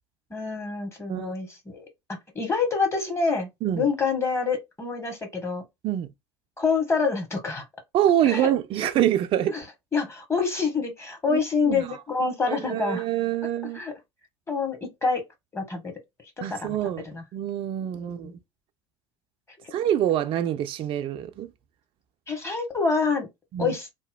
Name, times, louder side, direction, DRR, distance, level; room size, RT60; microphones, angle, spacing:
voice 1, 0.3-3.5 3.7-5.6 6.6-7.6 8.2-8.5 9.5-9.6 9.9-13.0 13.7-13.9 14.5-15.2 15.5-15.9 16.4-16.8 17.0-17.2 18.0-18.4 22.3-23.3 23.6-23.9, left 4 dB, 15° left, 1.1 m, -27 dB
voice 2, 7.9-9.6 11.3-11.9 12.5-13.8 16.4-17.0 17.3-18.3 19.7-21.5 23.5-23.7, right 11 dB, 35° right, 0.4 m, -25 dB
2.8 x 2.1 x 2.2 m
figure-of-eight pair, 70°, 15 cm